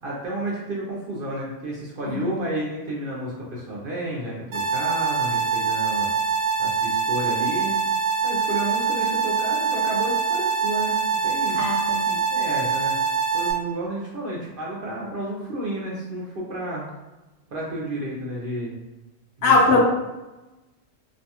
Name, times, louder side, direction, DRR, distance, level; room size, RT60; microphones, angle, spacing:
voice 1, 0.0-6.1 6.6-7.8 8.2-11.6 12.3-13.0 13.3-16.9 17.5-18.7 19.4-19.8, right 1 dB, 55° right, -4 dB, 0.6 m, -31 dB
sound 1, 4.5-13.5, right 5 dB, 75° right, 0.9 m, -24 dB
voice 2, 11.5-12.2 19.4-19.8, left 3 dB, 65° left, -1 dB, 0.8 m, -20 dB
2.5 x 2.3 x 2.7 m, 1.1 s
omnidirectional pair, 1.3 m